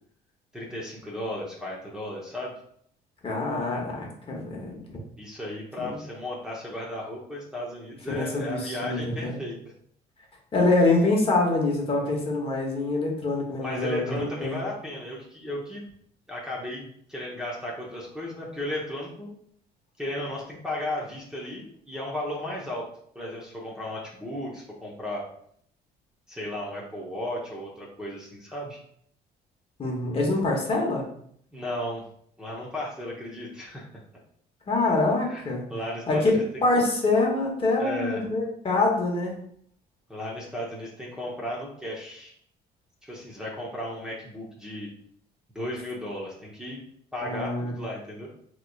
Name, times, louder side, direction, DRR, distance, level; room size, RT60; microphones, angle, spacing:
voice 1, 0.5-2.5 5.2-9.6 13.6-15.8 16.3-19.3 20.0-22.9 23.1-25.2 26.3-28.8 31.5-32.0 32.4-33.9 35.3-35.4 35.7-36.6 37.8-38.2 40.1-42.4 43.0-44.9 45.5-46.8 47.1-48.3, left 1 dB, 5° right, -5 dB, 0.8 m, -35 dB
voice 2, 3.2-4.8 5.8-6.0 8.1-9.4 10.5-14.6 29.8-31.1 34.7-35.6 36.1-36.3 36.6-39.3 47.2-47.7, left 2 dB, 35° left, -1 dB, 1.0 m, -25 dB
3.9 x 3.0 x 2.3 m, 0.64 s
cardioid pair, 110°, 17 cm